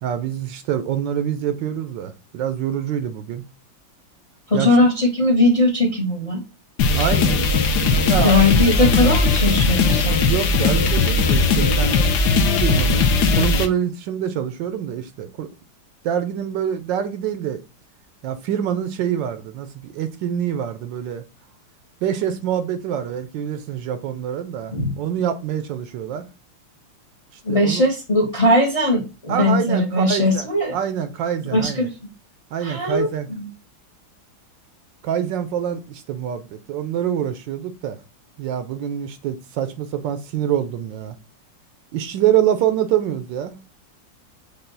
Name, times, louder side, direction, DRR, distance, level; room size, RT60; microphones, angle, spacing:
voice 1, 0.0-3.4 4.5-4.8 6.9-7.5 7.8-8.3 10.2-12.1 12.6-13.1 13.3-15.5 16.0-17.6 18.2-21.2 22.0-26.2 27.3-27.8 29.3-31.9 32.5-33.3 35.0-38.0 38.4-41.2 41.9-43.6, right 9 dB, 75° right, 1.2 m, -25 dB
voice 2, 4.5-6.4 6.9-7.4 8.2-10.2 24.7-25.0 27.4-30.8 31.5-31.9 32.6-33.5, left 1 dB, 30° left, 0.7 m, -19 dB
sound 1, 6.8-13.7, left 3 dB, 65° left, 1.1 m, -18 dB
5.4 x 2.3 x 3.9 m
omnidirectional pair, 2.1 m